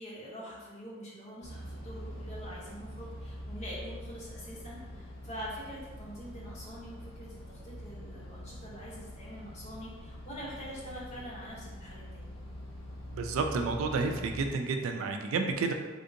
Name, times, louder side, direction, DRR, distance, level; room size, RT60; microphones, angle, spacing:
voice 1, 0.0-12.3, equal, 35° left, -6 dB, 0.9 m, -45 dB
sound 1, 1.4-14.5, equal, 80° left, 0.9 m, -44 dB
voice 2, 13.1-15.7, right 4 dB, 80° right, 5 dB, 0.3 m, -30 dB
3.5 x 2.6 x 2.5 m, 1.3 s
head